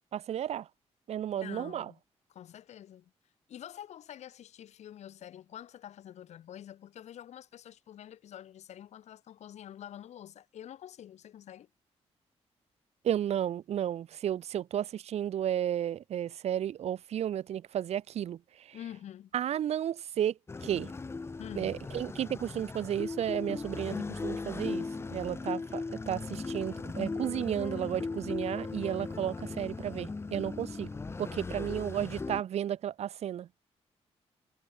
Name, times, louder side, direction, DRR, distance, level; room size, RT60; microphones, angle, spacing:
voice 1, 0.1-0.7 1.1-1.9 13.0-18.8 19.3-20.9 21.6-30.9 31.2-33.5, right 10 dB, 70° right, 1.0 m, -33 dB
voice 2, 1.4-2.0 2.3-3.1 3.5-11.7 18.7-19.3 21.4-21.9, left 11 dB, 80° left, 3.5 m, -47 dB
sound 1, 20.5-32.4, left 3 dB, 20° left, 2.0 m, -38 dB
wide cardioid pair, 155°, 11 cm